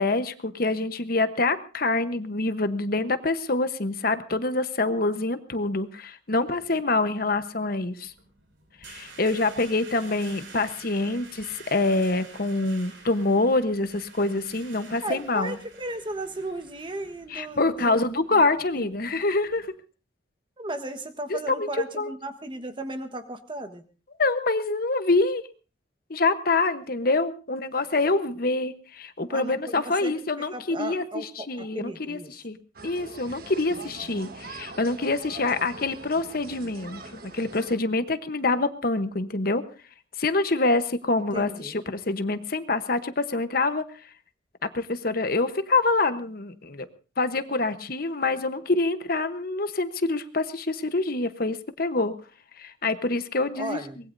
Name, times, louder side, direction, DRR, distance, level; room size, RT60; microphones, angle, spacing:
voice 1, 0.0-8.1 8.8-15.5 17.3-19.7 21.3-21.7 22.0-22.1 24.2-25.4 26.1-32.6 32.8-39.6 40.2-43.8 44.6-46.9 47.2-52.1 52.6-53.8, left 3 dB, 50° left, 10 dB, 1.0 m, -26 dB
sound 1, 8.0-19.7, right 4 dB, 80° right, 5.9 m, -49 dB
voice 2, 15.0-18.4 18.8-18.9 20.6-23.8 29.3-32.3 41.3-41.7 53.6-54.0, right 1 dB, 25° right, 8 dB, 1.3 m, -35 dB
sound 2, 32.7-37.8, right 3 dB, 50° right, 1.4 m, -43 dB
23.5 x 20.0 x 2.7 m, 0.35 s
head